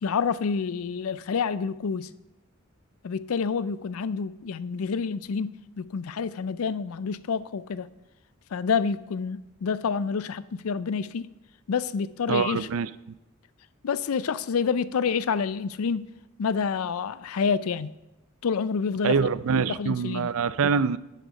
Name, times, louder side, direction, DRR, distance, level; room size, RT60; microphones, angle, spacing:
voice 1, 0.0-2.1 3.0-7.9 8.5-11.3 11.7-12.7 13.8-16.1 16.4-17.9 18.4-19.3 19.7-20.3, left 6 dB, 80° left, 17 dB, 0.4 m, -28 dB
voice 2, 12.3-12.9 19.0-21.0, right 5 dB, 70° right, 16 dB, 0.4 m, -24 dB
11.0 x 6.6 x 5.3 m, 0.93 s
head